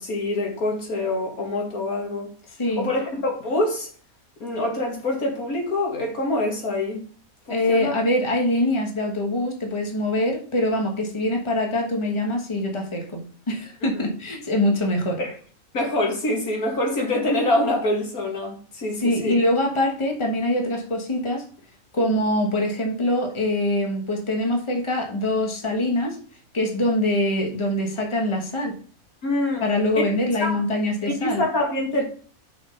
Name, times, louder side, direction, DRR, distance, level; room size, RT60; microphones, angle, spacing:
voice 1, 0.0-2.3 2.8-3.9 4.4-7.0 7.5-7.9 15.2-15.3 15.7-19.4 29.2-29.6 29.9-30.0 30.4-30.6 31.0-32.0, left 1 dB, 90° left, 2.5 m, -25 dB
voice 2, 7.5-15.2 19.0-21.5 21.9-26.2 26.5-28.7 29.6-31.4, left 1 dB, 20° left, 1.5 m, -24 dB
6.4 x 5.8 x 5.3 m
omnidirectional pair, 1.5 m